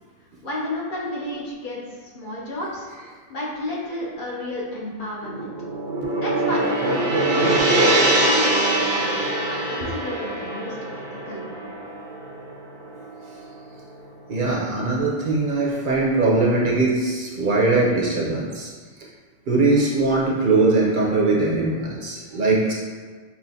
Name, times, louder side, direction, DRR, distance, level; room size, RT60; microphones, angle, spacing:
voice 1, 0.4-2.9 3.3-5.5 6.2-11.7, left 1 dB, 55° left, -5 dB, 0.9 m, -32 dB
Gong, 5.2-13.6, right 1 dB, 75° right, 0.9 m, -23 dB
voice 2, 14.3-18.7 19.5-22.7, right 3 dB, 55° right, -4 dB, 0.7 m, -21 dB
5.6 x 2.4 x 2.7 m, 1.5 s
omnidirectional pair, 1.1 m